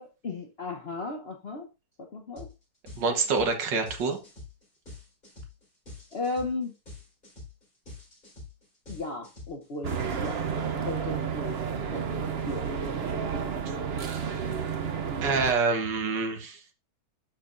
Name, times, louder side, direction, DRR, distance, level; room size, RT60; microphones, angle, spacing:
voice 1, 0.0-1.7 2.0-2.5 6.1-6.7 8.9-10.4 10.8-11.6 11.9-12.7, left 3 dB, 50° left, 3 dB, 0.7 m, -35 dB
sound 1, 2.4-2.6 2.9-10.6, left 3 dB, 25° left, 4.5 m, -46 dB
voice 2, 3.0-4.2 13.0-13.3 15.2-16.6, right 4 dB, 65° right, 5 dB, 1.9 m, -27 dB
sound 2, 9.8-15.5, right 6 dB, 90° right, 0.5 m, -31 dB
12.0 x 5.0 x 2.6 m, 0.28 s
omnidirectional pair, 2.1 m